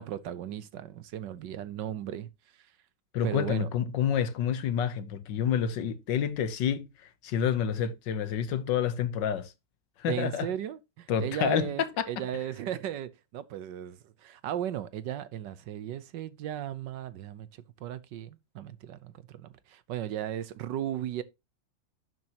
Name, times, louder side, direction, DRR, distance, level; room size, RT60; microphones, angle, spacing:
voice 1, 0.0-2.3 3.2-3.7 10.1-17.5 17.8-21.2, right 11 dB, 70° right, 1.4 m, -36 dB
voice 2, 3.1-9.5 10.0-10.5 11.1-12.1, left 8 dB, 70° left, 1.5 m, -29 dB
12.0 x 7.7 x 2.9 m
omnidirectional pair, 2.1 m